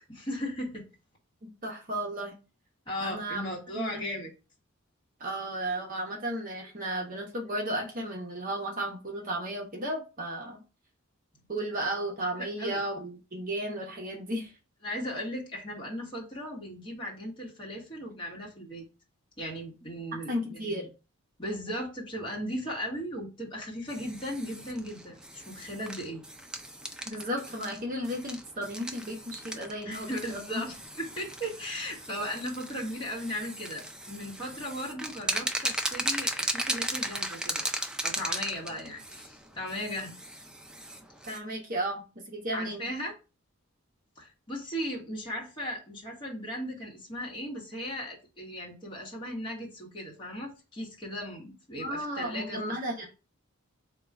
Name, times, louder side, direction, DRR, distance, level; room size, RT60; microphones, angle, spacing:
voice 1, 0.1-0.8 2.9-4.3 12.4-12.8 14.8-18.8 19.4-20.7 21.4-26.2 29.8-37.7 38.0-40.2 42.5-43.1 44.2-53.1, equal, 25° left, 1.1 m, -37 dB
voice 2, 1.6-2.4 3.0-3.5 3.7-4.0 5.2-10.6 11.5-14.5 20.3-20.9 27.1-30.6 41.3-42.9 51.8-53.1, right 1 dB, 40° right, 0.9 m, -34 dB
sound 1, 23.9-41.4, right 1 dB, 5° right, 0.3 m, -37 dB
3.7 x 2.3 x 4.4 m
head